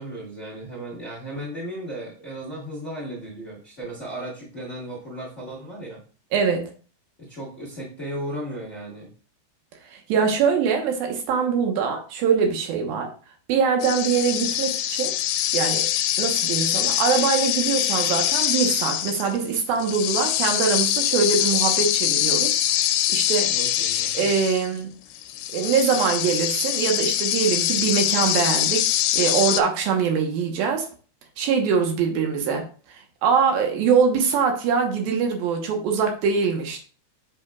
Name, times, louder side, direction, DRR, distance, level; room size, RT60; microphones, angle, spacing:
voice 1, 0.0-6.0 7.2-9.1 23.5-24.3, right 1 dB, 35° left, -5 dB, 1.1 m, -35 dB
voice 2, 6.3-6.7 9.9-13.1 13.5-15.1 15.5-15.9 16.2-22.6 23.1-23.5 24.1-25.0 25.5-30.9 31.4-36.8, right 6 dB, 75° right, 3 dB, 2.9 m, -23 dB
sound 1, 13.8-24.8 25.2-29.6, left 12 dB, 80° left, 2.2 m, -24 dB
7.9 x 6.1 x 2.4 m, 0.39 s
omnidirectional pair, 4.3 m